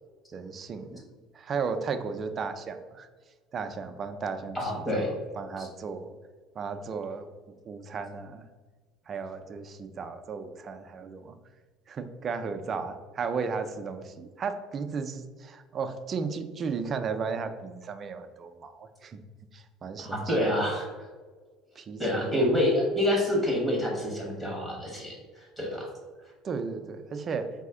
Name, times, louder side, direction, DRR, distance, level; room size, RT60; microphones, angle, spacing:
voice 1, 0.3-1.0 1.3-3.1 3.5-6.1 6.6-7.3 7.7-8.4 9.1-11.3 11.9-19.2 19.5-20.4 21.8-22.5 26.4-27.5, right 5 dB, 30° right, 7 dB, 0.4 m, -35 dB
voice 2, 4.5-5.1 5.6-5.7 20.0-20.9 22.0-25.9, left 1 dB, 10° left, -1 dB, 1.2 m, -27 dB
4.1 x 2.7 x 3.6 m, 1.4 s
cardioid pair, 130°, 0 cm